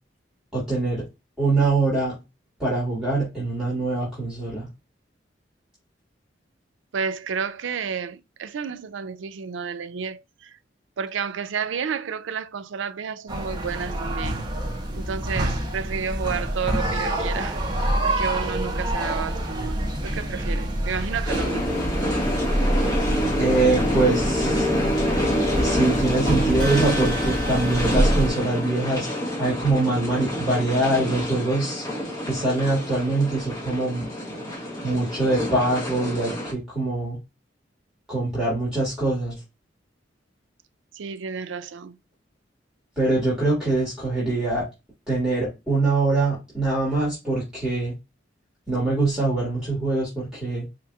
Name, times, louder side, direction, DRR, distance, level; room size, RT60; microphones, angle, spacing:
voice 1, 0.5-1.0 1.4-2.1 2.6-4.7 23.4-24.7 25.6-29.1 29.4-31.9 32.3-34.1 34.8-37.2 38.1-39.4 43.0-44.7 45.1-48.0 48.7-50.7, right 2 dB, 5° right, 2.0 m, -23 dB
voice 2, 6.9-10.6 11.0-14.4 14.9-17.6 18.0-21.8 40.9-42.0, right 6 dB, 90° right, 0.4 m, -31 dB
sound 1, 13.3-28.3, right 1 dB, 25° right, 0.8 m, -27 dB
sound 2, 21.3-36.5, equal, 20° left, 1.2 m, -27 dB
sound 3, 26.6-29.5, right 1 dB, 60° left, 2.1 m, -37 dB
4.8 x 2.9 x 2.3 m
head